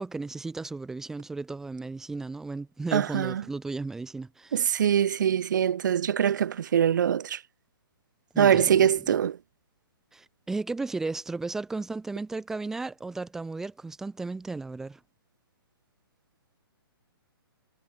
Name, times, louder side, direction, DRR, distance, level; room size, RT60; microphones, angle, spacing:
voice 1, 0.0-4.9 8.3-9.2 10.1-15.0, right 3 dB, 5° right, 2.0 m, -35 dB
voice 2, 2.9-3.4 4.5-7.4 8.4-9.4, right 9 dB, 50° right, 1.2 m, -23 dB
hypercardioid pair, 175°, 13 cm